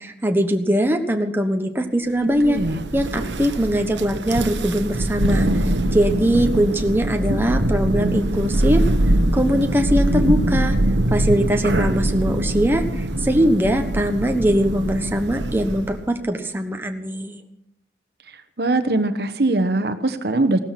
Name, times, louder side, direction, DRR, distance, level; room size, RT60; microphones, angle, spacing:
voice 1, 0.0-2.6 2.9-8.8 9.3-10.8 11.1-17.4, equal, 10° right, 4 dB, 1.2 m, -21 dB
voice 2, 2.4-2.8 18.6-20.6, right 2 dB, 65° right, 9 dB, 1.2 m, -21 dB
Thunder, 2.4-16.1, right 1 dB, 85° right, 1.2 m, -22 dB
17.0 x 13.5 x 5.9 m, 0.79 s
head